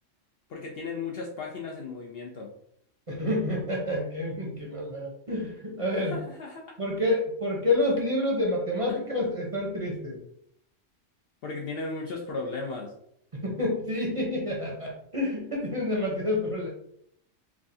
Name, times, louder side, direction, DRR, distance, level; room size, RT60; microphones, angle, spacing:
voice 1, 0.5-2.5 6.0-6.8 8.9-9.1 11.4-12.9, left 4 dB, 60° left, 0 dB, 0.6 m, -36 dB
voice 2, 3.1-6.1 6.8-10.2 13.3-16.7, left 1 dB, 35° right, -3 dB, 0.7 m, -28 dB
4.6 x 2.3 x 2.6 m, 0.71 s
omnidirectional pair, 1.3 m